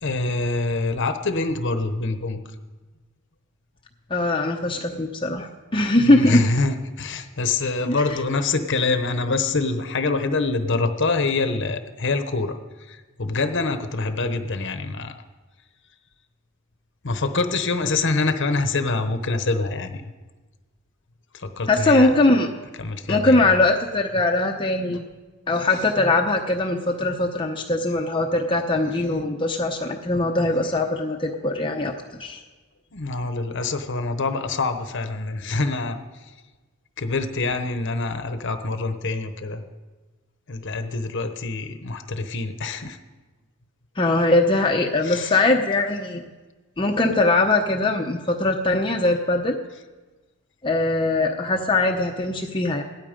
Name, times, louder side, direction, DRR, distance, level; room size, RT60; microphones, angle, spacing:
voice 1, 0.0-2.4 4.7-5.1 5.9-15.1 17.0-20.1 21.3-22.1 22.8-23.5 25.7-25.9 32.9-36.3 37.0-39.6 40.5-43.0 45.0-45.4, left 3 dB, 60° left, 8 dB, 1.0 m, -25 dB
voice 2, 4.1-6.4 7.9-8.0 21.7-22.5 23.1-25.0 25.5-31.9 32.2-32.4 44.0-46.2 46.8-49.6 50.6-52.8, left 2 dB, 25° left, 2 dB, 0.8 m, -21 dB
17.5 x 12.5 x 5.2 m, 1.3 s
head